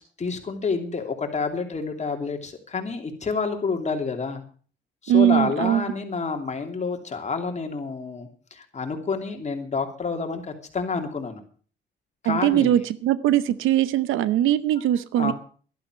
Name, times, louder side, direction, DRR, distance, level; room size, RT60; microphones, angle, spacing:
voice 1, 0.2-4.4 5.0-11.4 12.2-12.7 15.2-15.3, left 4 dB, 35° left, 4 dB, 2.9 m, -28 dB
voice 2, 5.1-5.8 12.2-15.3, right 11 dB, 90° right, 16 dB, 0.8 m, -21 dB
12.0 x 11.5 x 6.3 m, 0.42 s
cardioid pair, 90°, 20 cm